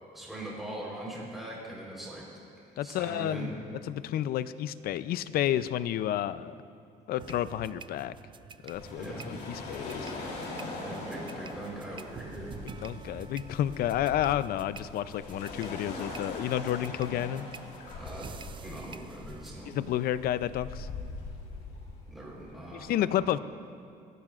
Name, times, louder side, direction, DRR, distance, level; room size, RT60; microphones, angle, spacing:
voice 1, 0.1-2.3 2.7-3.5 8.9-9.4 10.7-12.5 18.0-18.3 18.6-19.8 22.1-23.3, right 1 dB, ahead, -5 dB, 3.8 m, -41 dB
voice 2, 2.8-3.5 3.9-6.5 7.1-8.1 8.6-10.1 12.8-17.5 19.7-20.9 22.7-23.4, left 11 dB, 65° left, 15 dB, 0.5 m, -31 dB
sound 1, 7.2-19.6, right 6 dB, 30° right, 0.4 m, -49 dB
sound 2, 8.7-22.7, left 2 dB, 80° left, 3.2 m, -42 dB
24.5 x 12.0 x 2.5 m, 2.4 s
cardioid pair, 110°, 17 cm